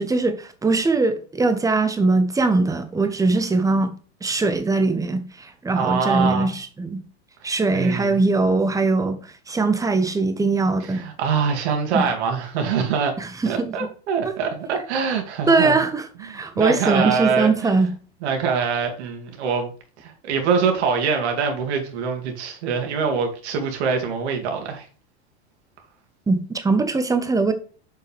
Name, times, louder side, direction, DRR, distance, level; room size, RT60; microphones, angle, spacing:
voice 1, 0.0-3.9 4.2-7.0 7.4-9.2 9.5-11.0 11.9-12.1 13.2-13.7 15.5-17.9 26.3-27.5, right 3 dB, 10° right, 1.0 m, -21 dB
voice 2, 5.7-6.5 7.4-8.2 10.9-13.1 13.4-15.8 16.3-17.9 18.2-19.7 20.0-24.9, right 5 dB, 75° right, 2.6 m, -24 dB
7.5 x 5.4 x 3.5 m
supercardioid pair, 125°, 34 cm